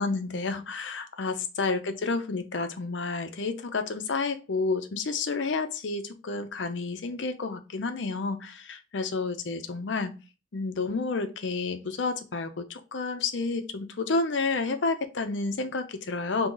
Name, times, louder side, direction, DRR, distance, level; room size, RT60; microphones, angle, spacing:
voice 1, 0.0-10.1 10.5-16.5, left 3 dB, 65° left, 0.6 m, -30 dB
3.7 x 2.8 x 3.8 m
head